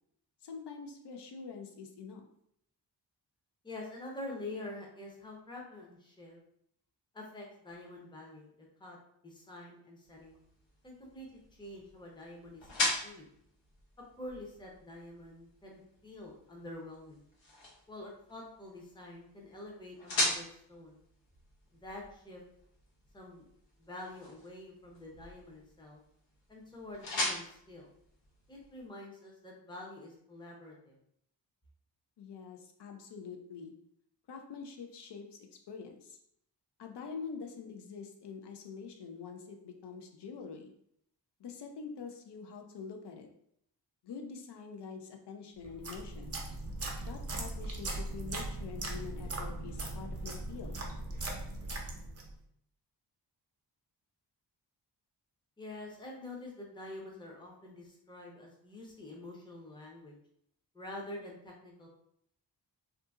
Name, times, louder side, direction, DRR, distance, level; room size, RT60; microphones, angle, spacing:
voice 1, 0.4-2.3 32.2-33.7 34.3-36.2 36.8-40.7 41.4-43.3 44.0-46.4 47.1-47.9 48.1-50.8, left 5 dB, 65° left, 4 dB, 0.5 m, -45 dB
voice 2, 3.6-6.4 7.1-9.0 9.2-10.4 10.8-13.3 14.2-17.2 17.9-21.0 21.7-22.4 23.1-23.5 23.8-26.0 26.5-27.9 28.5-31.0 55.6-60.2 60.7-61.9, left 1 dB, 10° left, -2 dB, 0.6 m, -47 dB
sound 1, 10.0-28.9, left 2 dB, 85° left, 0.9 m, -41 dB
sound 2, 45.6-52.3, right 2 dB, 35° right, 0.5 m, -39 dB
2.6 x 2.6 x 2.3 m, 0.71 s
wide cardioid pair, 85°, 44 cm